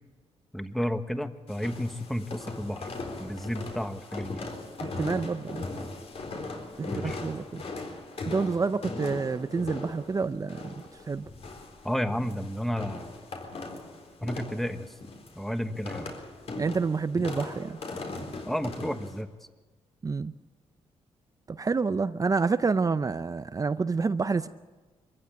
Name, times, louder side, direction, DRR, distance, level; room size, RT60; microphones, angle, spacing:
voice 1, 0.5-2.8 3.2-4.4 6.8-7.2 11.8-13.1 14.2-14.9 15.3-16.2 18.4-19.3, equal, ahead, 1.3 m, -32 dB
sound 1, 1.5-19.2, left 3 dB, 60° left, 4.1 m, -39 dB
voice 2, 4.8-5.6 6.8-7.6 8.3-10.7 11.1-11.3 16.6-17.8 20.0-20.3 21.5-24.5, right 4 dB, 30° right, 0.6 m, -28 dB
23.5 x 15.0 x 8.6 m
cardioid pair, 85°, 12 cm